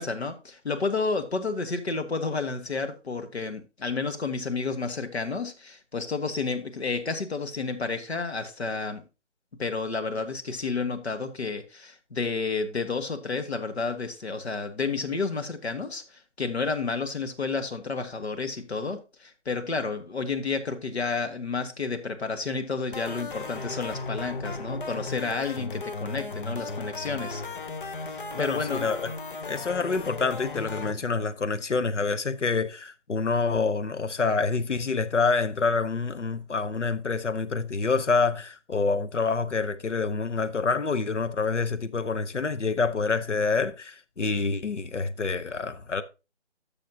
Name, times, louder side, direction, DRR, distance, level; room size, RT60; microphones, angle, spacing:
voice 1, 0.0-9.0 9.6-27.4 28.1-28.9, left 4 dB, 65° left, 1.4 m, -31 dB
sound 1, 22.9-30.9, left 3 dB, 45° left, 0.6 m, -36 dB
voice 2, 28.3-29.1 29.4-46.0, left 4 dB, 80° left, 0.9 m, -27 dB
11.5 x 6.4 x 2.7 m
figure-of-eight pair, 155°, 35 cm